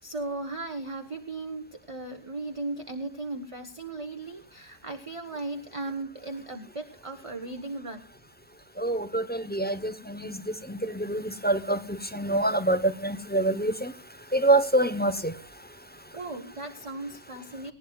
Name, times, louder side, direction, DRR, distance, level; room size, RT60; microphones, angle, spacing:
voice 1, 0.0-8.1 16.1-17.7, right 2 dB, 25° right, 5 dB, 1.1 m, -37 dB
voice 2, 8.8-10.3 10.7-11.8 12.1-13.9 14.3-15.3, right 2 dB, 10° left, 9 dB, 0.8 m, -25 dB
19.5 x 17.0 x 2.4 m, 0.31 s
omnidirectional pair, 1.3 m